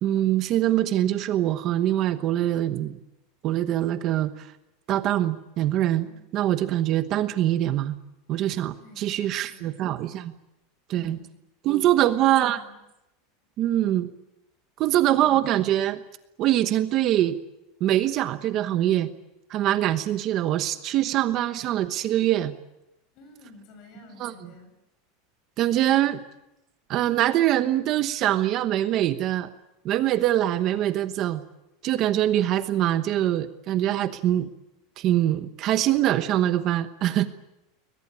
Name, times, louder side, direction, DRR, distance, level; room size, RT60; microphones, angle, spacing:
voice 1, 0.0-3.0 3.4-4.5 4.9-6.0 6.3-7.9 8.3-10.3 10.9-11.2 11.6-12.6 13.6-14.1 14.8-16.0 16.4-17.4 17.8-19.1 19.5-22.5 24.2-24.3 25.6-26.2 26.9-29.5 29.8-31.4 31.8-34.5 35.0-37.3, right 13 dB, 35° right, 11 dB, 1.1 m, -23 dB
voice 2, 8.8-9.8 11.0-11.3 11.8-12.8 15.1-15.5 23.1-24.7, left 3 dB, 40° left, 8 dB, 7.4 m, -50 dB
22.0 x 20.5 x 9.9 m, 0.92 s
supercardioid pair, 165°, 0 cm